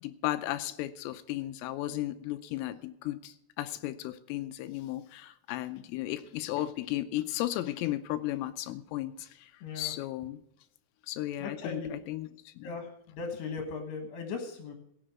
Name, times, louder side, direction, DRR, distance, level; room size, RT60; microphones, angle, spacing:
voice 1, 0.0-10.4 11.1-12.7, left 15 dB, 85° left, 12 dB, 3.2 m, -35 dB
voice 2, 9.6-9.9 11.4-11.9 12.6-14.8, left 4 dB, 65° left, 5 dB, 3.2 m, -38 dB
16.5 x 7.8 x 6.0 m, 0.73 s
omnidirectional pair, 6.0 m